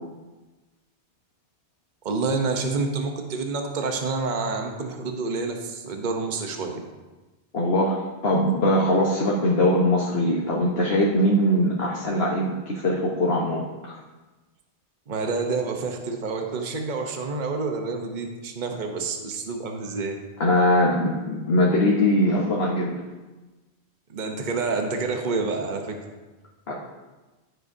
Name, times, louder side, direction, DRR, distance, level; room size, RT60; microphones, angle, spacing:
voice 1, 2.0-6.8 15.1-20.2 24.1-26.0, right 4 dB, 45° right, 4 dB, 1.0 m, -28 dB
voice 2, 7.5-14.0 20.4-22.9 26.7-26.8, left 1 dB, 60° left, -3 dB, 1.4 m, -21 dB
14.5 x 8.0 x 2.7 m, 1.2 s
omnidirectional pair, 1.1 m